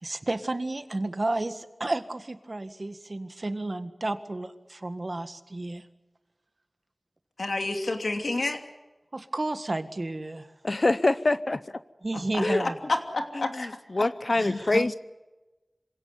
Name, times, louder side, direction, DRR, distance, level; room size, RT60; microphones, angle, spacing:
voice 1, 0.0-5.9 9.1-10.5 12.0-12.7 14.3-14.9, right 2 dB, 50° right, 10 dB, 1.7 m, -32 dB
voice 2, 7.4-8.6 12.1-13.7 14.0-14.1 14.7-14.8, left 2 dB, 85° left, 4 dB, 2.9 m, -30 dB
voice 3, 10.6-11.6 12.4-12.6 13.9-14.9, left 2 dB, 55° left, 14 dB, 0.8 m, -24 dB
26.5 x 17.5 x 9.6 m, 1.1 s
wide cardioid pair, 55°, 0 cm